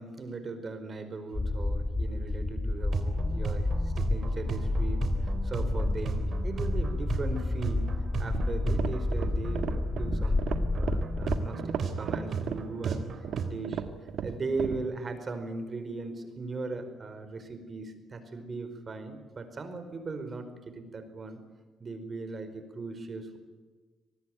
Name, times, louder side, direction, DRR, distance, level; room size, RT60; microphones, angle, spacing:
voice 1, 0.0-7.9 8.2-10.4 10.7-13.0 13.4-21.4 21.8-23.4, right 3 dB, 40° right, 9 dB, 4.8 m, -38 dB
sound 1, 1.3-11.5, left 2 dB, 20° left, 1.6 m, -30 dB
sound 2, 2.9-13.5, right 5 dB, 55° right, 3.6 m, -36 dB
sound 3, 8.2-14.8, right 8 dB, 75° right, 1.9 m, -35 dB
25.0 x 20.0 x 9.2 m, 1.3 s
cardioid pair, 90°, 0 cm